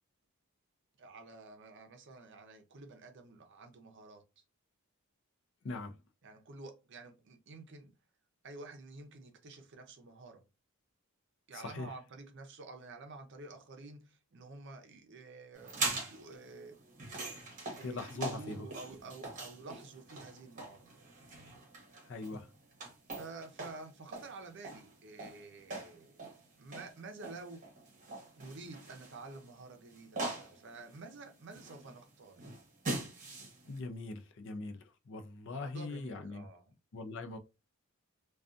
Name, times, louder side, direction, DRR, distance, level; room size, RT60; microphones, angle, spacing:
voice 1, 1.0-4.4 6.2-7.9 8.4-10.4 11.5-16.8 17.8-20.9 23.2-26.1 26.6-27.6 28.4-32.4 35.5-36.7, right 3 dB, 55° right, 0.6 m, -50 dB
voice 2, 5.6-6.0 11.5-11.9 17.8-18.7 22.1-22.5 33.7-36.5 36.9-37.4, left 3 dB, 55° left, 0.4 m, -41 dB
sound 1, 15.5-33.8, right 2 dB, 35° right, 0.9 m, -43 dB
2.5 x 2.3 x 2.4 m
head